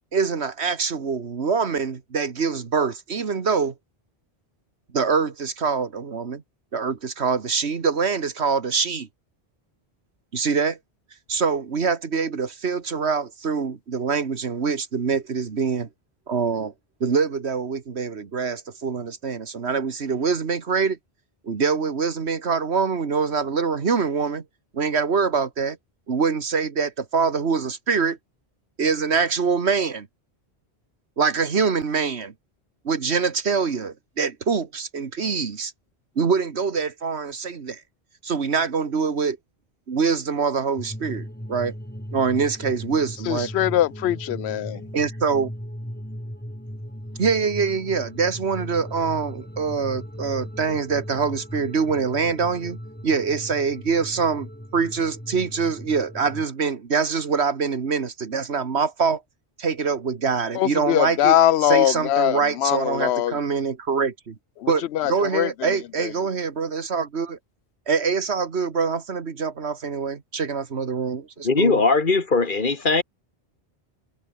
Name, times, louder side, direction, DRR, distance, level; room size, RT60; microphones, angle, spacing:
voice 1, 0.1-3.7 4.9-6.4 6.7-9.1 10.3-10.8 11.3-15.9 16.3-16.7 17.0-21.0 21.4-24.4 24.7-25.8 26.1-28.2 28.8-30.1 31.2-32.3 32.9-35.7 36.2-37.8 38.2-39.4 39.9-41.7 42.1-43.5 44.9-45.5 47.2-59.2 59.6-61.4 61.6-64.4 64.7-67.4 67.9-71.8, right 5 dB, 85° right, 1.9 m, -24 dB
sound 1, 40.8-56.5, equal, 10° left, 7.8 m, -37 dB
voice 2, 43.3-44.8 60.5-63.3 64.6-65.5 66.0-66.1, left 12 dB, 80° left, 0.8 m, -21 dB
voice 3, 71.4-73.0, left 3 dB, 50° left, 2.0 m, -20 dB
omnidirectional pair, 1.1 m